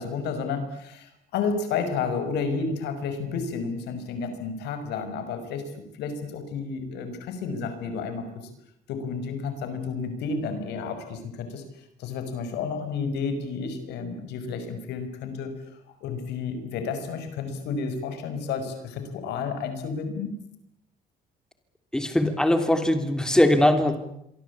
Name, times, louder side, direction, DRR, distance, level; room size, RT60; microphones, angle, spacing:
voice 1, 0.0-8.5 8.9-15.5 16.0-20.3, left 5 dB, 80° left, 8 dB, 5.9 m, -31 dB
voice 2, 21.9-24.0, left 1 dB, 5° left, 8 dB, 3.1 m, -21 dB
28.0 x 23.5 x 8.6 m, 0.78 s
cardioid pair, 110°, 17 cm